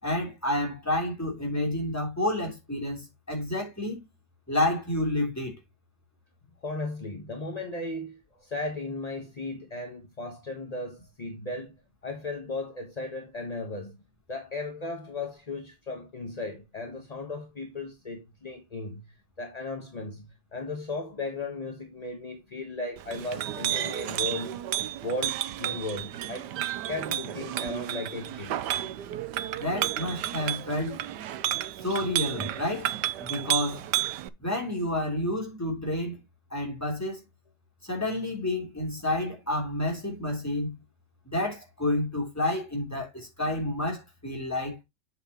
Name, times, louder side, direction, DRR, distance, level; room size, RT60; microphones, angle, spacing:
voice 1, 0.0-4.0 4.5-5.6 29.5-31.0 31.8-32.9 33.2-33.8 34.4-36.2 36.5-37.2 37.8-40.7 41.2-44.8, left 1 dB, 10° left, 3.3 m, -29 dB
voice 2, 6.6-14.0 14.3-26.5 26.8-28.7, left 2 dB, 25° left, 1.0 m, -36 dB
Chink clink, 23.0-34.3, right 12 dB, 70° right, 1.2 m, -32 dB
8.1 x 7.6 x 3.0 m
omnidirectional pair, 2.2 m